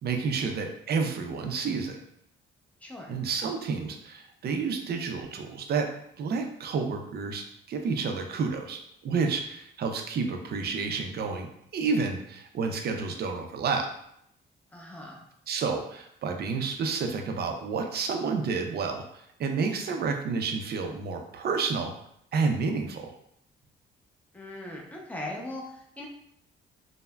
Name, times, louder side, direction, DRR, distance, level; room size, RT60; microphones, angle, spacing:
voice 1, 0.0-2.0 3.1-5.9 6.2-11.5 11.7-13.9 15.5-21.9 22.3-23.1, right 5 dB, 55° right, 4 dB, 0.4 m, -30 dB
voice 2, 2.8-3.1 14.7-15.2 24.3-26.1, left 1 dB, 5° left, -2 dB, 0.6 m, -40 dB
3.2 x 2.0 x 2.2 m, 0.73 s
cardioid pair, 90°, 20 cm